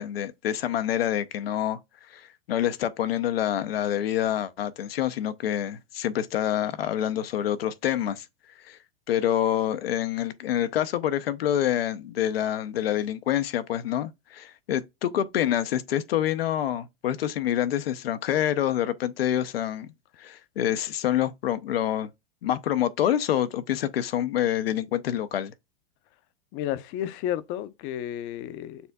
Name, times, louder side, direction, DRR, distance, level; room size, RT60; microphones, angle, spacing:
voice 1, 0.0-1.8 2.1-8.2 8.7-8.8 9.1-19.9 20.2-22.1 22.4-25.5, left 11 dB, 85° left, 0.6 m, -27 dB
voice 2, 26.5-28.9, left 11 dB, 40° left, 0.5 m, -32 dB
6.8 x 2.6 x 2.2 m
hypercardioid pair, 105°, 29 cm